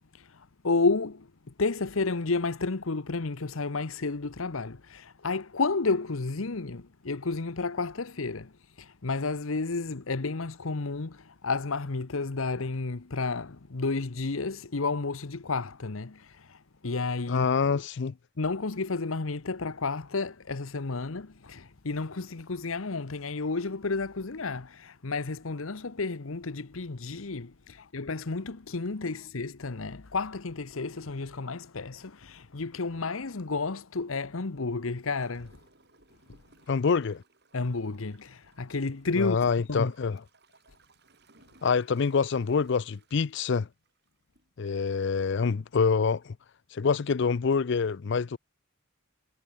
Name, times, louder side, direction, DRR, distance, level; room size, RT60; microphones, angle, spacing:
voice 1, 0.2-1.3 1.6-16.6 16.8-17.5 18.4-35.5 37.5-39.4 39.7-39.9, left 3 dB, 80° left, 1.0 m, -31 dB
voice 2, 17.3-18.1 36.7-37.2 39.2-40.2 41.6-43.7 44.6-46.4 46.7-48.4, left 5 dB, 60° left, 0.5 m, -26 dB
Gurgling / Toilet flush, 35.1-44.5 45.0-45.1, right 3 dB, 50° right, 7.2 m, -63 dB
head